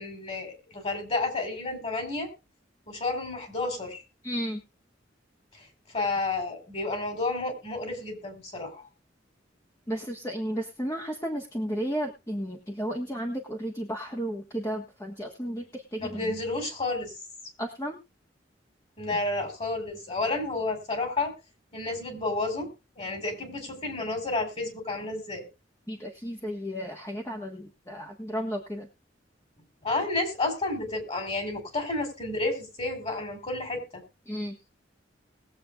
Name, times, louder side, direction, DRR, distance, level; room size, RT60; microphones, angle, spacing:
voice 1, 0.0-2.3 2.9-4.0 5.9-8.8 16.0-17.1 19.0-21.3 21.7-22.7 23.0-25.4 29.8-34.0, left 2 dB, 35° left, 4 dB, 4.4 m, -31 dB
voice 2, 4.2-4.6 9.9-16.4 17.6-18.0 25.9-28.9 34.3-34.5, equal, 15° left, 1 dB, 1.5 m, -33 dB
21.0 x 7.9 x 2.5 m, 0.28 s
head